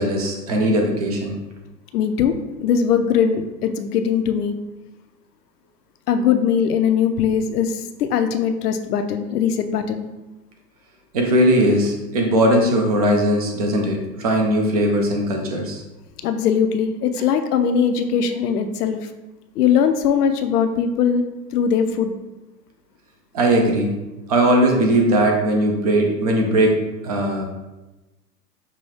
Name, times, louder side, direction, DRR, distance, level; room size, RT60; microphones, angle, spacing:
voice 1, 0.0-1.3 11.1-15.8 23.3-23.9 24.3-26.8 27.0-27.4, right 1 dB, 25° right, 2 dB, 0.3 m, -19 dB
voice 2, 1.9-2.3 2.6-4.5 6.1-10.1 16.2-19.1 19.6-21.2 21.5-22.1, left 7 dB, 70° left, 7 dB, 0.6 m, -20 dB
5.5 x 2.3 x 3.1 m, 1.0 s
hypercardioid pair, 120°, 49 cm